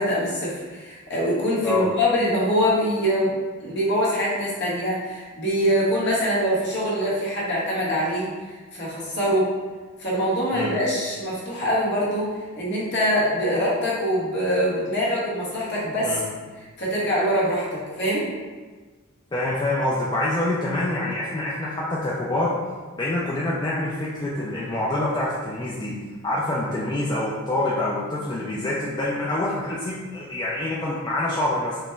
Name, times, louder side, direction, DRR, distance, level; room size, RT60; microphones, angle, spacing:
voice 1, 0.0-3.3 3.6-9.5 10.0-16.2 16.6-18.2, equal, 55° left, -7 dB, 1.2 m, -24 dB
voice 2, 19.3-22.5 23.0-25.9 26.2-31.8, left 1 dB, 20° left, -6 dB, 0.4 m, -26 dB
4.9 x 2.2 x 3.3 m, 1.4 s
head